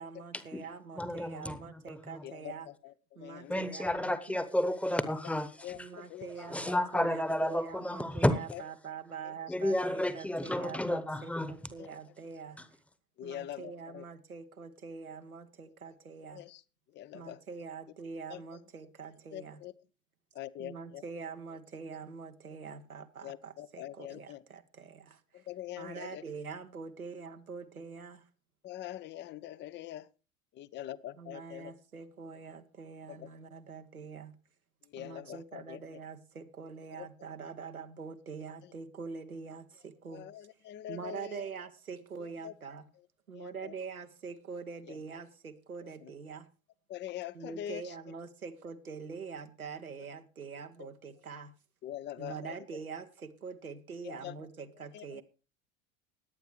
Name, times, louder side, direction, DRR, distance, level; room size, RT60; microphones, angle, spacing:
voice 1, 0.0-2.7 3.1-4.4 5.7-12.6 13.2-16.5 17.1-19.6 20.6-25.5 25.8-28.3 31.2-34.4 35.0-40.5 40.9-42.9 43.3-46.5 47.3-51.5 52.2-55.2, right 5 dB, 80° right, 1.2 m, -44 dB
voice 2, 1.0-2.2 3.5-5.9 6.4-8.4 9.5-11.5, left 1 dB, 5° left, 1.2 m, -31 dB
voice 3, 2.2-3.6 5.6-6.3 8.5-8.6 11.8-11.9 13.2-14.0 16.3-16.6 17.0-17.4 18.3-18.4 19.3-19.7 20.3-21.0 23.2-24.4 25.3-26.2 28.6-30.0 30.5-31.7 33.1-33.3 34.9-35.8 36.9-37.1 40.1-41.5 42.2-42.5 43.3-43.7 44.9-45.0 46.0-46.1 46.9-47.8 50.8-50.9 51.8-52.5 54.0-54.3 54.9-55.2, left 12 dB, 25° left, 0.6 m, -43 dB
21.0 x 9.1 x 3.2 m
figure-of-eight pair, 80°, 42 cm